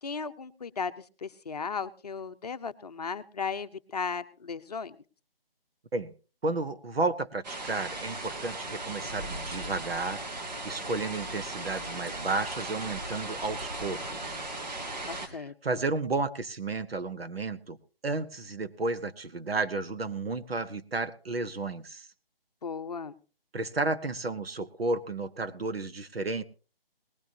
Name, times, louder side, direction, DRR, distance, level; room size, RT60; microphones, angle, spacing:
voice 1, 0.0-5.0 15.1-15.8 22.6-23.1, left 5 dB, 40° left, 10 dB, 0.8 m, -36 dB
voice 2, 6.4-10.2 10.6-14.4 15.3-17.8 18.0-22.1 23.5-26.4, right 3 dB, 80° right, 10 dB, 1.4 m, -32 dB
sound 1, 7.4-15.3, right 2 dB, 45° right, 2.9 m, -37 dB
19.5 x 14.5 x 2.8 m, 0.36 s
figure-of-eight pair, 165°, 30 cm